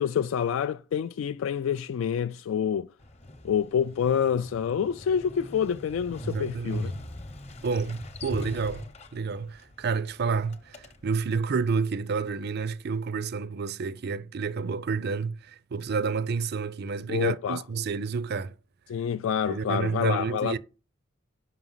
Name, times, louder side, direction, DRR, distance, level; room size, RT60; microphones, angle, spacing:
voice 1, 0.0-2.9 3.4-6.9 17.1-17.6 18.9-20.6, left 8 dB, 75° left, 0.3 m, -27 dB
Motorcycle, 3.0-11.3, left 1 dB, 35° left, 0.8 m, -42 dB
voice 2, 6.2-6.9 7.6-18.6 19.5-20.6, right 5 dB, 55° right, 0.4 m, -30 dB
6.0 x 5.8 x 5.5 m
head